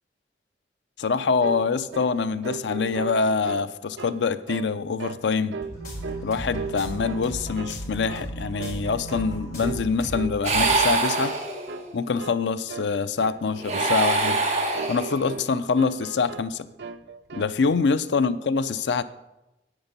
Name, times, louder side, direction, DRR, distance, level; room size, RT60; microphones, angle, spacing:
voice 1, 1.0-5.6 6.2-11.3 11.9-14.4 14.9-16.7 17.3-19.0, left 4 dB, 90° left, 13 dB, 0.5 m, -25 dB
sound 1, 1.4-1.7 1.9-2.2 2.4-3.7 4.0-4.2 4.5-4.7 5.0-5.2 5.5-6.3 6.5-7.3 7.6-7.8 8.1-8.3 8.6-8.8 9.1-9.3 9.6-9.9 10.1-10.4 10.6-10.9 11.2-11.4 11.7-11.9 12.2-12.4 12.7-12.9 13.2-13.4 13.7-14.5 14.8-15.5 15.8-16.5 16.8-17.5, right 5 dB, 85° right, 0.5 m, -36 dB
sound 2, 5.6-10.2 10.5-10.7, right 1 dB, 50° left, 4.4 m, -36 dB
sound 3, 10.4-11.9 13.5-15.4, right 3 dB, 40° right, 1.6 m, -24 dB
10.0 x 8.8 x 5.3 m, 0.94 s
head